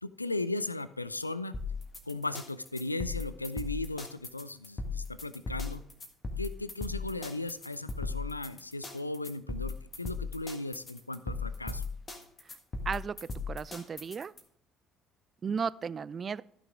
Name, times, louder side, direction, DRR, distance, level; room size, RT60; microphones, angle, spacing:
voice 1, 0.0-1.5 2.1-5.8 6.4-11.8, left 2 dB, 85° left, 15 dB, 0.3 m, -36 dB
sound 1, 1.5-14.4, left 4 dB, 30° left, 1.7 m, -38 dB
voice 2, 12.9-14.3 15.4-16.4, right 6 dB, 35° right, 19 dB, 0.3 m, -35 dB
13.5 x 6.2 x 3.7 m, 0.69 s
figure-of-eight pair, 55°, 0 cm